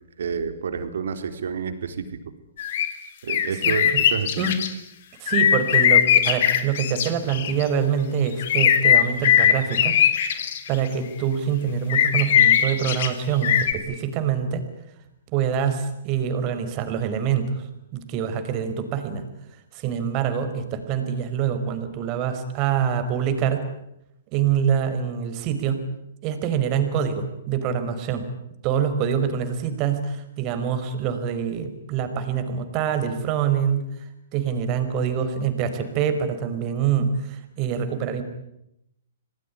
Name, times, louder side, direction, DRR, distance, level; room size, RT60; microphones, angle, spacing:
voice 1, 0.2-2.0 3.2-4.4, right 6 dB, 75° right, 9 dB, 3.8 m, -29 dB
sound 1, 2.6-2.9 3.3-4.7 5.3-7.6 8.4-10.9 11.9-13.1 13.4-13.7, left 9 dB, 55° left, 3.5 m, -19 dB
voice 2, 3.5-4.0 4.4-4.6 5.2-10.0 10.3-14.6 15.3-17.7 17.9-19.3 19.7-23.7 24.3-25.8 26.2-28.3 28.6-33.9 34.3-38.2, right 8 dB, 35° right, 9 dB, 4.9 m, -25 dB
27.5 x 19.5 x 9.9 m, 0.83 s
hypercardioid pair, 140°, 0 cm